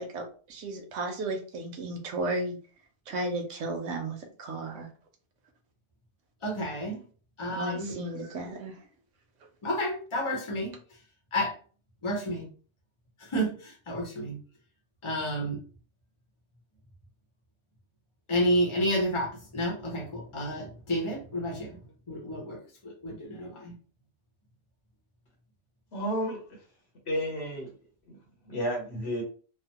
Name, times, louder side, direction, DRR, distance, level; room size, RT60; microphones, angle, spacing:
voice 1, 0.0-2.6 3.1-4.9 7.6-8.7, right 2 dB, 80° right, 3 dB, 1.0 m, -34 dB
voice 2, 6.4-7.0 7.4-7.9 9.6-10.7 11.3-11.5 12.0-12.5 13.2-14.4 15.0-15.6 18.3-21.8 22.1-23.7, equal, 30° left, 0 dB, 0.8 m, -30 dB
voice 3, 25.9-26.6 27.1-27.7 28.1-28.2 28.5-29.2, equal, 65° left, 0 dB, 1.2 m, -31 dB
3.2 x 2.1 x 2.8 m, 0.40 s
omnidirectional pair, 1.2 m